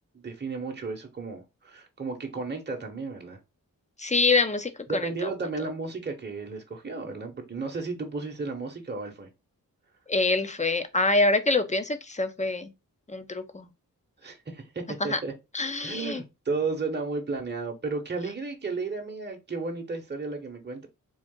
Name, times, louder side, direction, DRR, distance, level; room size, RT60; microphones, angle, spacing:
voice 1, 0.1-3.4 4.9-9.3 14.2-15.3 15.8-20.9, right 3 dB, 30° right, 1.0 m, -33 dB
voice 2, 4.0-5.3 10.1-12.7 13.1-13.7 15.0-15.2 15.5-16.2, left 3 dB, 20° left, 0.7 m, -25 dB
3.9 x 2.4 x 3.7 m
cardioid pair, 55°, 35 cm